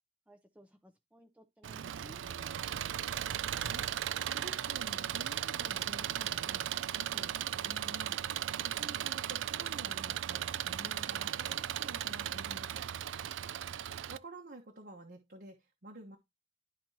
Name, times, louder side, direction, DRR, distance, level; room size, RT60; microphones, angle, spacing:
voice 1, 0.3-2.6, right 1 dB, 5° right, 0.6 m, -59 dB
Engine, 1.6-14.2, right 10 dB, 90° right, 0.4 m, -36 dB
voice 2, 4.3-8.3 8.6-12.9 14.1-16.2, right 1 dB, 55° right, 1.2 m, -50 dB
12.0 x 4.3 x 2.8 m
head